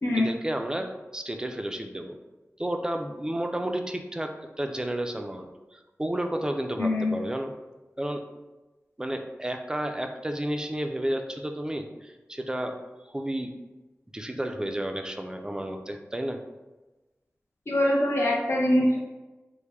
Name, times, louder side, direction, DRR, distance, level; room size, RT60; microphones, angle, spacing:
voice 1, 0.1-2.2 2.6-7.5 8.0-8.2 9.0-12.8 13.0-13.5 14.1-16.4, right 1 dB, 15° right, 5 dB, 0.3 m, -32 dB
voice 2, 6.8-7.1 17.7-19.0, left 1 dB, 60° left, -4 dB, 0.5 m, -23 dB
3.2 x 2.1 x 3.4 m, 1.1 s
wide cardioid pair, 60°, 5 cm